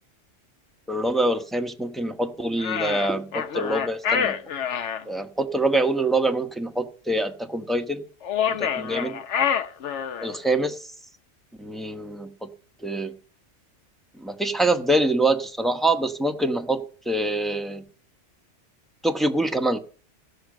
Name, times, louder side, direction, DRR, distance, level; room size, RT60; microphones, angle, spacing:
voice 1, 0.9-4.4 5.0-8.0 8.5-9.2 10.2-10.8 11.6-12.5 12.8-13.1 14.2-17.8 19.0-19.8, right 2 dB, ahead, 5 dB, 0.9 m, -25 dB
sound 1, 2.6-5.0 8.2-10.4, left 8 dB, 70° left, 1.1 m, -26 dB
16.5 x 6.7 x 6.4 m, 0.41 s
omnidirectional pair, 1.2 m